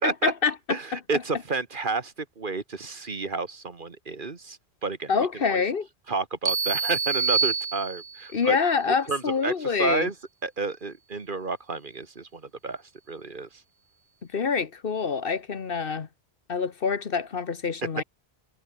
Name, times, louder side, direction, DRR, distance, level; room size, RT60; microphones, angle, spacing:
voice 1, 0.0-1.4 5.1-5.9 8.3-10.1 14.3-16.1 16.5-18.0, left 5 dB, 55° left, 1.3 m, -26 dB
voice 2, 0.7-5.1 5.4-5.6 6.1-8.6 9.1-10.1 10.4-12.8 13.1-13.5, right 4 dB, 50° right, 1.7 m, -31 dB
sound 1, 6.5-8.3, right 5 dB, 35° right, 0.4 m, -26 dB
omnidirectional pair, 1.1 m